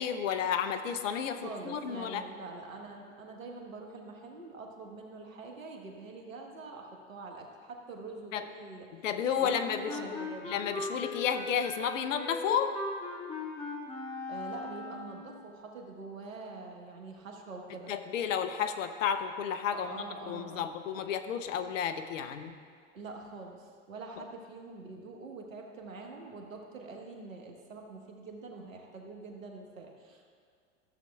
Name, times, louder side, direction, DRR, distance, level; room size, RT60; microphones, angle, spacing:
voice 1, 0.0-2.2 8.3-8.4 9.0-10.2 10.4-12.7 17.9-22.5, left 8 dB, 75° left, 9 dB, 0.7 m, -32 dB
voice 2, 1.3-8.9 9.4-10.6 14.3-17.9 19.7-20.7 22.9-30.3, right 3 dB, 85° right, 2 dB, 1.4 m, -45 dB
Wind instrument woodwind instrument, 9.3-15.3, left 3 dB, 15° left, 1.6 m, -39 dB
14.0 x 7.4 x 2.3 m, 2.1 s
hypercardioid pair, 90°, 39 cm